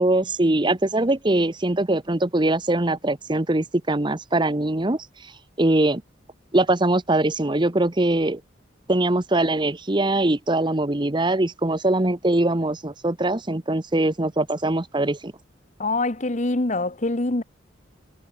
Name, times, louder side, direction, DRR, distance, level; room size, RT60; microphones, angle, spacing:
voice 1, 0.0-5.1 5.6-6.0 6.5-8.4 8.9-15.3, right 2 dB, 25° right, 1.0 m, -22 dB
voice 2, 15.8-17.4, left 2 dB, 40° left, 1.2 m, -24 dB
head